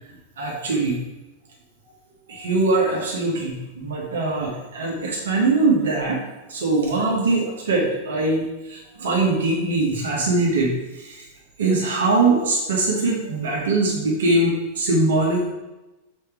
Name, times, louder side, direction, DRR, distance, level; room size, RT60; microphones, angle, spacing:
voice 1, 0.4-1.0 2.3-6.2 6.5-11.3 11.6-15.5, right 2 dB, 65° right, -2 dB, 1.5 m, -22 dB
6.5 x 4.4 x 4.8 m, 1.0 s
figure-of-eight pair, 90°, 0 cm